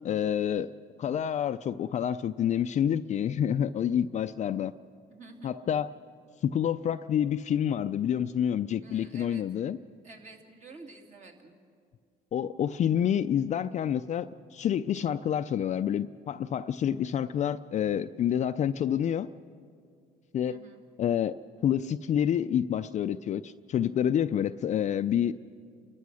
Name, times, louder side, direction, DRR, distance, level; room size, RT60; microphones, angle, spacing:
voice 1, 0.0-0.7 1.0-4.7 5.4-5.9 6.4-9.8 12.3-19.3 20.3-20.6 21.0-21.4 21.6-25.3, left 9 dB, 45° left, 10 dB, 0.4 m, -28 dB
voice 2, 5.1-5.5 8.8-9.4 10.0-11.5 20.5-20.8, right 3 dB, 45° right, 2 dB, 3.0 m, -50 dB
30.0 x 14.0 x 6.4 m, 2.2 s
cardioid pair, 110°, 17 cm